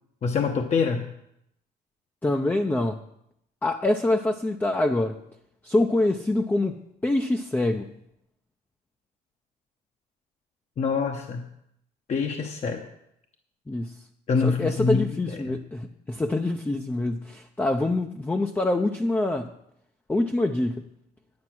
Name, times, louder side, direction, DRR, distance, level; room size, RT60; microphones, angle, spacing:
voice 1, 0.2-1.1 10.8-11.4 12.1-12.8 14.3-15.0 15.3-15.6, left 5 dB, 40° left, 4 dB, 0.9 m, -25 dB
voice 2, 2.2-3.0 3.6-5.2 5.6-7.9 13.7-14.0 14.4-19.5 20.1-20.9, left 2 dB, 10° left, 5 dB, 0.6 m, -25 dB
9.6 x 9.5 x 6.1 m, 0.78 s
cardioid pair, 110°, 17 cm